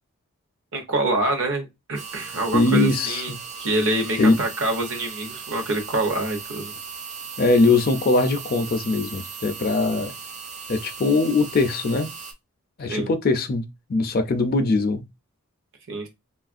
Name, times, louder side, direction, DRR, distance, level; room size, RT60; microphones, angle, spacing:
voice 1, 0.7-3.3 3.6-6.7 12.9-13.1 15.9-16.1, right 2 dB, 55° right, 0.8 m, -26 dB
sound 1, 1.9-12.3, right 5 dB, 30° right, 0.4 m, -37 dB
voice 2, 2.5-3.4 4.2-4.4 7.4-10.1 10.7-12.1 12.8-13.6 13.9-15.0, left 3 dB, 40° left, 0.4 m, -21 dB
3.0 x 2.4 x 2.4 m
head